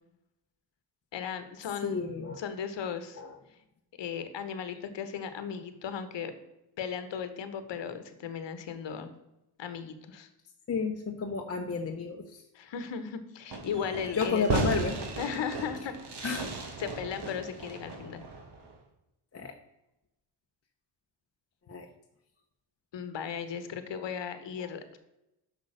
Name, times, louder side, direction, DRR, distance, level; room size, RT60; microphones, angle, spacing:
voice 1, 1.1-2.0 2.4-3.2 4.0-6.3 6.8-9.1 9.6-10.3 12.5-14.5 15.2-15.9 16.2-16.3 16.8-18.2 22.9-25.0, left 7 dB, 60° left, 10 dB, 1.1 m, -36 dB
voice 2, 1.8-2.4 3.2-3.4 10.7-12.4 14.1-15.0 16.2-16.5 19.3-19.5 21.7-21.9 24.6-24.7, left 5 dB, 30° left, 2 dB, 0.8 m, -32 dB
Fireworks, 13.5-18.7, right 3 dB, 55° right, 1.8 m, -35 dB
6.3 x 5.4 x 6.4 m, 0.90 s
cardioid pair, 80°, 48 cm